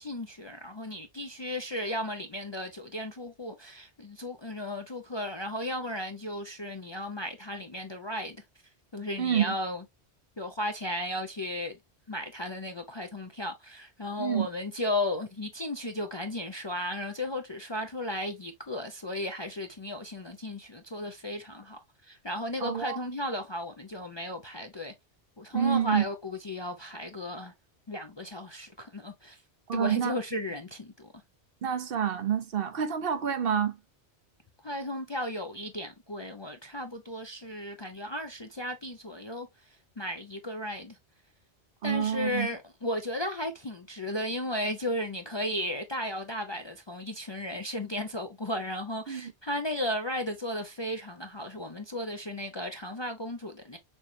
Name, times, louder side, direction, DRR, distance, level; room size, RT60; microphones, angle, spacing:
voice 1, 0.0-8.4 8.9-9.8 10.4-11.8 12.1-24.9 25.4-27.5 27.9-29.4 29.7-31.1 34.6-39.5 40.0-41.0 41.8-53.8, left 1 dB, 35° left, 0.5 m, -35 dB
voice 2, 9.2-9.5 14.2-14.5 22.6-23.0 25.5-26.0 29.7-30.1 31.6-33.8 41.8-42.5 49.1-49.3, right 8 dB, 60° right, 0.9 m, -28 dB
6.3 x 3.2 x 2.6 m
omnidirectional pair, 1.1 m